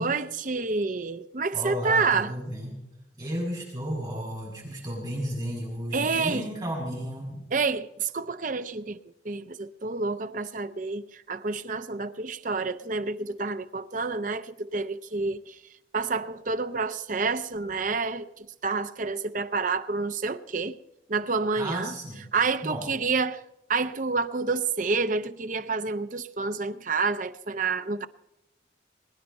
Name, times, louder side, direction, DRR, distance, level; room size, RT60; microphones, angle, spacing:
voice 1, 0.0-2.3 5.9-6.5 7.5-9.0 9.2-15.5 15.9-20.8 21.1-21.9 22.3-23.4 23.7-28.1, right 4 dB, 45° right, 0.6 m, -28 dB
voice 2, 1.5-2.8 3.2-7.4 21.6-22.3 22.6-22.8, equal, 25° right, 6.2 m, -33 dB
21.5 x 10.0 x 5.3 m
head